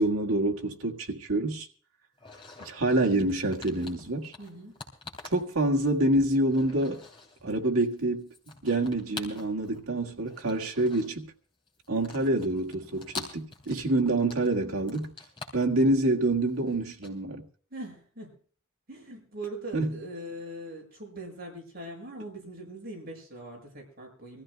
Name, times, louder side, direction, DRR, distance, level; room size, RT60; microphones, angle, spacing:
voice 1, 0.0-1.7 2.6-4.3 5.3-7.0 7.4-8.3 8.6-11.3 11.9-15.1 15.5-17.4 19.7-19.9, right 2 dB, 80° right, 1.8 m, -27 dB
sound 1, 2.2-6.2 6.4-7.5 7.8-9.8 10.1-11.3 11.7-17.1, left 3 dB, 25° left, 3.2 m, -46 dB
voice 2, 4.4-4.7 17.7-18.4 18.9-24.4, right 1 dB, 45° right, 6.8 m, -41 dB
25.5 x 14.5 x 2.2 m
head